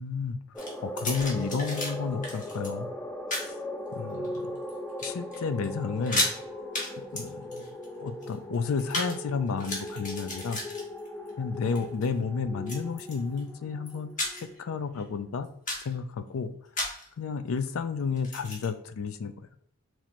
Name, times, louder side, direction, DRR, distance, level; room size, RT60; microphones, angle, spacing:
voice 1, 0.0-2.9 3.4-3.6 3.9-4.5 5.0-6.3 7.0-7.6 8.0-10.6 11.4-14.1 14.6-15.5 15.8-16.5 17.2-19.5, left 5 dB, 90° left, 11 dB, 0.4 m, -32 dB
sound 1, 0.5-15.1, left 1 dB, 10° left, 0.4 m, -39 dB
sound 2, 0.6-1.9 2.2-2.7 3.3-3.5 4.1-4.7 5.0-5.4 5.6-5.7 6.0-6.4 6.7-6.9 7.2-9.2 9.5-11.3 11.6-12.0 12.7-13.4 13.9-14.6 14.9-15.0 15.4-15.9 16.8-17.1 18.2-18.7, left 1 dB, 40° left, 1.2 m, -33 dB
3.1 x 2.9 x 4.2 m, 0.67 s
head